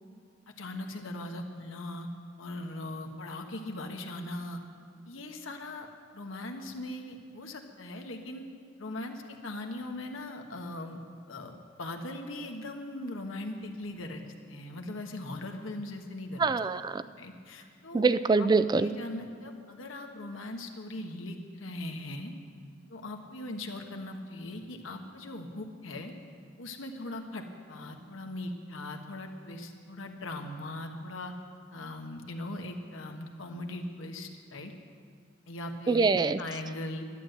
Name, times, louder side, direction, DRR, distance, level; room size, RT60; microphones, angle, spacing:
voice 1, 0.5-2.1 2.4-4.6 5.1-5.9 6.1-8.5 8.8-14.2 14.5-16.5 17.2-18.0 18.3-18.5 18.8-22.3 22.9-26.1 26.6-31.3 31.7-34.7 35.5-36.1 36.4-37.0, left 1 dB, 90° left, 3 dB, 1.3 m, -40 dB
voice 2, 16.4-17.0 17.9-18.9 35.9-36.4, right 4 dB, 20° right, 13 dB, 0.3 m, -24 dB
11.5 x 10.5 x 7.8 m, 2.1 s
head